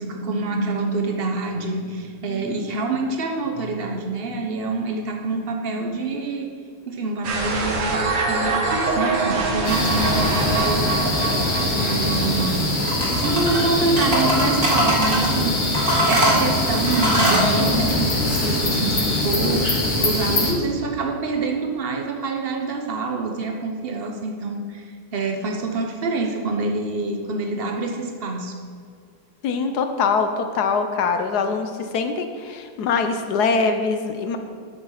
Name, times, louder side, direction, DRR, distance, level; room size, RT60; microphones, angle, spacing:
voice 1, 0.0-6.5 6.9-8.6 9.0-12.6 13.1-24.9 25.1-28.5, right 3 dB, 70° right, 3 dB, 0.5 m, -26 dB
sound 1, 7.2-12.6, right 3 dB, 90° right, 2.3 m, -24 dB
sound 2, 9.6-20.5, left 1 dB, 45° left, 2.4 m, -23 dB
sound 3, 12.8-13.6 14.0-15.3 15.7-17.5, right 1 dB, 45° right, 2.5 m, -21 dB
voice 2, 29.4-34.4, left 5 dB, 65° left, 7 dB, 1.0 m, -23 dB
12.0 x 6.3 x 5.7 m, 2.3 s
omnidirectional pair, 2.4 m